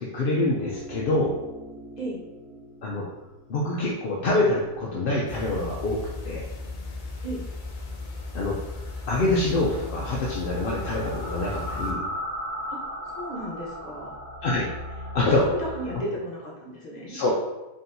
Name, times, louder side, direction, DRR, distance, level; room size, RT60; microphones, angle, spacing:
voice 1, 0.0-1.3 2.8-3.0 3.5-6.0 6.2-6.4 8.3-8.6 9.1-12.0 14.4-14.7 15.1-15.5 17.0-17.3, left 2 dB, 55° left, -4 dB, 0.6 m, -25 dB
sound 1, 0.6-16.0, equal, 45° right, 1.9 m, -39 dB
sound 2, 5.3-11.9, left 3 dB, 80° left, 1.1 m, -36 dB
voice 2, 13.2-14.1 15.7-17.2, right 1 dB, 35° left, -5 dB, 1.1 m, -35 dB
4.3 x 3.5 x 2.6 m, 1.0 s
omnidirectional pair, 1.4 m